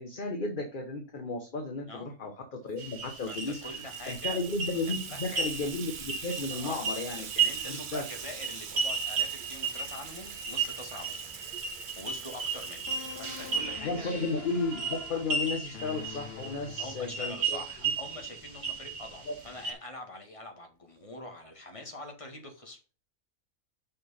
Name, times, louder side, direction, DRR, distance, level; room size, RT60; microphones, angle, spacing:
voice 1, 0.0-3.6 4.1-7.3 7.7-8.0 13.8-17.6 19.3-19.4, left 3 dB, 40° left, 4 dB, 1.1 m, -34 dB
Water tap faucet / Sink (filling or washing), 2.8-14.2, right 7 dB, 50° right, 0.6 m, -44 dB
sound 1, 2.8-19.7, right 5 dB, 75° right, 2.2 m, -35 dB
voice 2, 3.3-4.4 5.1-5.4 6.5-11.2 11.7-14.1 16.8-22.8, left 1 dB, 20° left, 3 dB, 1.9 m, -45 dB
sound 2, 12.9-17.5, left 9 dB, 60° left, 0.6 m, -46 dB
6.2 x 5.7 x 5.7 m, 0.34 s
omnidirectional pair, 1.5 m